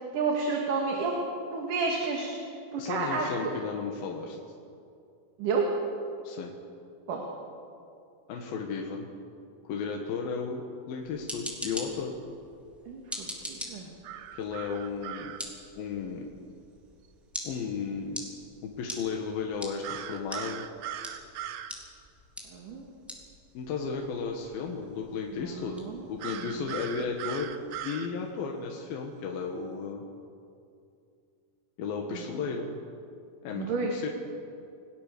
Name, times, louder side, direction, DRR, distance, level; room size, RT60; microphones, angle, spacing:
voice 1, 0.1-1.2 1.5-2.3 2.7-3.5 5.4-5.7 7.1-7.2 12.9-14.0 22.5-22.9 25.3-26.0 32.1-32.3 33.5-33.9, right 4 dB, 65° right, 0 dB, 3.6 m, -30 dB
voice 2, 2.8-4.4 6.2-6.5 8.3-9.1 9.6-12.1 14.3-15.3 15.8-16.3 17.4-18.3 18.6-20.6 23.5-25.8 26.1-27.5 27.8-30.0 31.8-32.7 33.4-34.1, left 5 dB, 80° left, 1 dB, 3.3 m, -34 dB
sound 1, 11.0-27.8, equal, ahead, 3.2 m, -45 dB
sound 2, 14.0-15.4 19.8-21.7 26.2-28.1, right 10 dB, 90° right, 2.8 m, -39 dB
28.5 x 19.0 x 6.7 m, 2.5 s
omnidirectional pair, 4.1 m